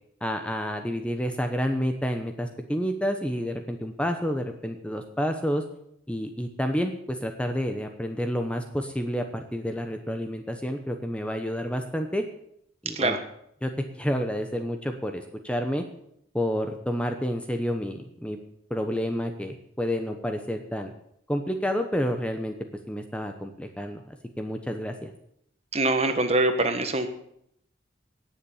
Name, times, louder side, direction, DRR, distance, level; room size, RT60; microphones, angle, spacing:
voice 1, 0.2-5.6 6.1-9.2 9.5-12.2 12.8-13.2 13.6-13.7 14.0-15.8 16.3-18.4 18.7-20.9 21.3-22.5 22.9-25.1, equal, 5° left, 5 dB, 0.9 m, -29 dB
voice 2, 25.7-27.1, right 2 dB, 35° right, 7 dB, 1.4 m, -23 dB
18.0 x 7.1 x 7.2 m, 0.73 s
head